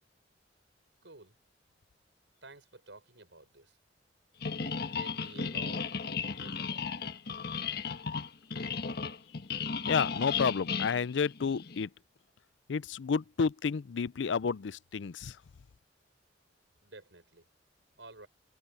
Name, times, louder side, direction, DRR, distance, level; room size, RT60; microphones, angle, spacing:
voice 1, 1.0-1.3 2.4-3.7 4.6-5.8 6.4-6.8 16.8-17.4 18.0-18.3, right 3 dB, 85° right, 6.5 m, -51 dB
sound 1, 4.4-11.8, left 5 dB, 60° left, 1.3 m, -35 dB
voice 2, 9.9-11.9 12.7-15.4, left 5 dB, 85° left, 0.5 m, -31 dB
open air
head